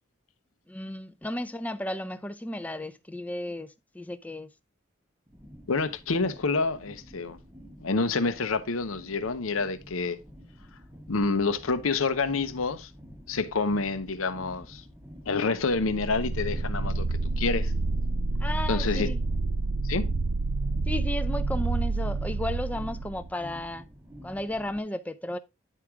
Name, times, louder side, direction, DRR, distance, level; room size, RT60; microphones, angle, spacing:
voice 1, 0.7-4.5 18.4-19.2 20.9-23.8 24.2-25.4, left 1 dB, 5° left, 0.4 m, -34 dB
sound 1, 5.3-24.8, equal, 10° right, 0.8 m, -48 dB
voice 2, 5.7-7.4 7.8-10.2 11.1-12.9 13.3-14.8 15.3-17.7 18.7-19.1 19.8-20.1, left 4 dB, 85° left, 0.8 m, -28 dB
sound 2, 15.7-23.4, right 3 dB, 90° right, 0.5 m, -28 dB
10.0 x 4.7 x 3.6 m
head